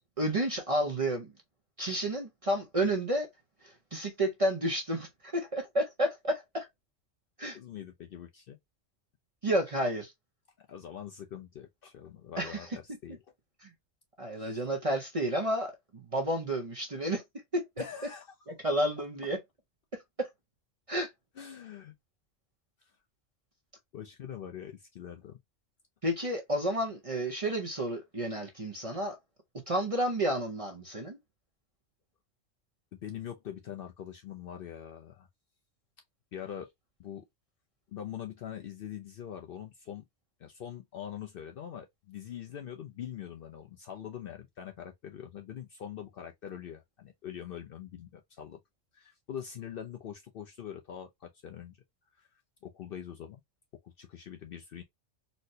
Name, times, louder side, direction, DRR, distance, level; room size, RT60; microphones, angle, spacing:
voice 1, 0.2-1.3 1.8-3.3 3.6-6.7 7.4-7.6 9.4-10.1 12.4-12.7 13.6-13.7 14.2-17.2 17.5-17.8 18.5-19.4 20.2-20.3 20.9-21.1 26.0-29.2 29.7-31.2, right 1 dB, 35° right, 0.6 m, -31 dB
voice 2, 7.5-8.6 10.6-13.2 14.3-14.6 17.8-18.4 21.4-21.9 23.9-25.4 32.9-35.3 36.3-36.7 37.0-37.3 37.9-40.1 40.4-48.6 48.9-51.8 52.1-52.3 52.6-53.4 53.8-54.8, left 9 dB, 60° left, 0.6 m, -43 dB
4.2 x 2.1 x 2.6 m
omnidirectional pair, 1.3 m